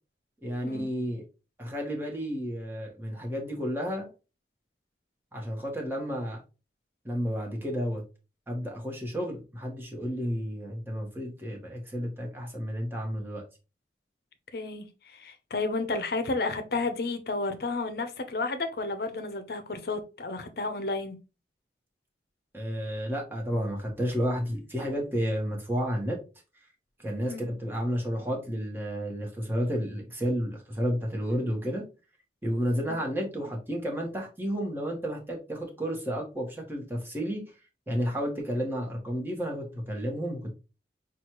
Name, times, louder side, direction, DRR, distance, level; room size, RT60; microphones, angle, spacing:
voice 1, 0.4-1.2 1.6-4.1 5.3-6.4 7.0-8.0 8.5-13.4 22.5-26.2 27.0-31.8 32.4-37.4 37.9-40.5, equal, 10° right, 1.1 m, -31 dB
voice 2, 14.5-21.2 27.2-27.4 32.9-33.0, left 3 dB, 60° left, 0.6 m, -32 dB
6.0 x 2.4 x 3.0 m
head